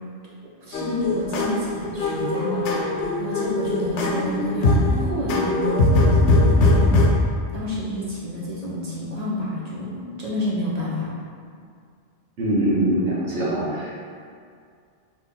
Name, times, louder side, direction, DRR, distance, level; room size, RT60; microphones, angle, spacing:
voice 1, 0.6-5.7 6.5-7.0 7.5-11.1, left 1 dB, 40° right, -6 dB, 0.8 m, -29 dB
sound 1, 0.7-7.1, left 2 dB, 75° left, 0.9 m, -20 dB
voice 2, 12.4-13.9, right 1 dB, 75° right, -7 dB, 1.3 m, -23 dB
4.2 x 2.9 x 3.6 m, 2.2 s
omnidirectional pair, 1.2 m